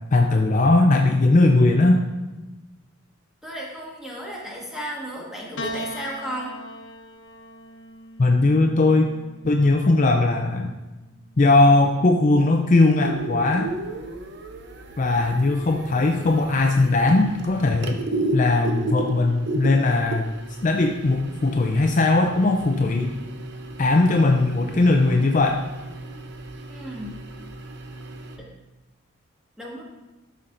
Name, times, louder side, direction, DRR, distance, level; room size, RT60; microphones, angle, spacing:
voice 1, 0.1-2.0 8.2-9.1 9.4-10.7 11.4-13.7 15.0-18.0 18.3-20.3 20.6-23.1 23.8-25.6, left 2 dB, 35° left, 3 dB, 0.4 m, -19 dB
voice 2, 3.4-6.6 26.7-27.2 28.4-28.5 29.6-29.8, equal, ahead, -4 dB, 1.5 m, -34 dB
Piano, 5.6-10.1 11.1-11.8, equal, 60° left, 0.7 m, -39 dB
sound 1, 13.0-28.4, right 2 dB, 55° right, 0.7 m, -34 dB
12.5 x 5.6 x 2.6 m, 1.1 s
head